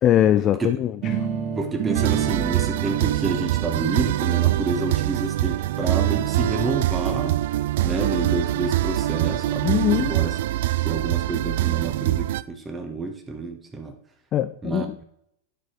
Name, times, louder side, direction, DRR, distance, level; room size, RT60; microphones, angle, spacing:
voice 1, 0.0-1.3 9.6-10.1 14.3-15.0, left 11 dB, 30° left, 0.4 m, -21 dB
sound 1, 1.0-6.9, right 7 dB, 40° right, 1.3 m, -32 dB
voice 2, 1.6-7.4 7.8-9.7 9.9-10.3 10.8-13.9 14.6-15.0, right 3 dB, 15° right, 1.1 m, -29 dB
sound 2, 1.9-12.4, right 15 dB, 55° right, 0.3 m, -24 dB
10.0 x 6.0 x 4.6 m
figure-of-eight pair, 90°, 0 cm